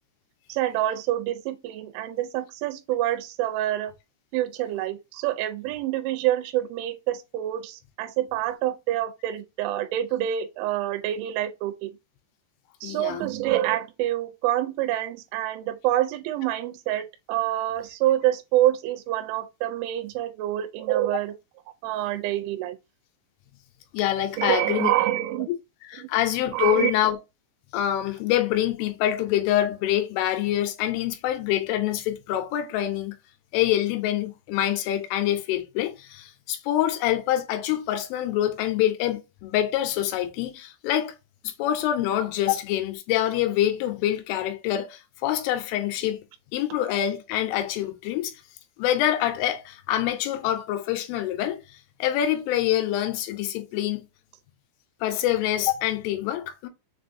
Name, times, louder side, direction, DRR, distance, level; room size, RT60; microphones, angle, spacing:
voice 1, 0.5-3.9 4.3-11.9 12.8-21.3 21.8-22.8 24.4-25.5 26.5-26.9, right 13 dB, 85° right, 3.0 m, -26 dB
voice 2, 12.8-13.3 23.9-24.9 25.9-27.2 27.7-33.1 33.5-41.2 41.4-46.2 46.5-48.3 48.8-54.1 55.0-56.7, left 12 dB, 85° left, 3.2 m, -26 dB
6.9 x 2.5 x 2.6 m
omnidirectional pair, 5.4 m